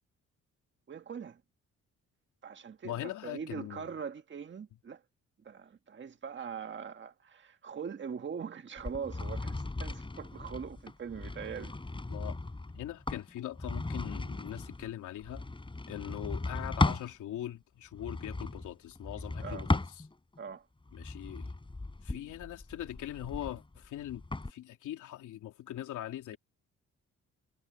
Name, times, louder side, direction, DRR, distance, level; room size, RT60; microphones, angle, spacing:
voice 1, 0.9-1.4 2.4-5.0 5.4-11.8 19.4-19.7 20.4-20.7, right 6 dB, 40° right, 1.7 m, -42 dB
voice 2, 2.8-3.8 12.1-12.4 12.7-15.5 15.9-19.8 20.9-21.5 22.0-24.2 24.5-26.4, left 12 dB, 80° left, 3.3 m, -41 dB
sound 1, 8.8-17.1 17.9-20.4 20.9-24.5, left 2 dB, 15° left, 4.1 m, -36 dB
cardioid pair, 90°, 30 cm